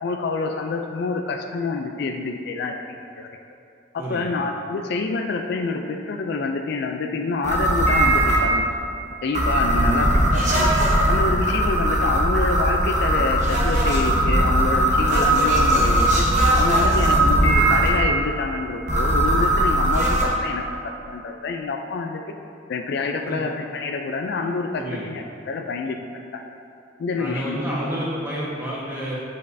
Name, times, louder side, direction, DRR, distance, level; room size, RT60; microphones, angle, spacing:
voice 1, 0.0-3.3 3.9-8.7 9.2-10.7 11.1-16.3 16.6-20.6 21.1-22.2 22.7-26.0 26.3-26.4 27.0-27.6, left 4 dB, 60° left, 4 dB, 0.4 m, -27 dB
voice 2, 4.0-4.3 9.7-10.1 23.2-23.4 24.7-25.1 27.2-29.1, right 1 dB, 10° right, -7 dB, 1.4 m, -30 dB
sound 1, 7.4-8.4 9.3-17.9 18.9-20.2, right 1 dB, 40° right, 1.0 m, -19 dB
8.7 x 5.2 x 2.6 m, 2.6 s
head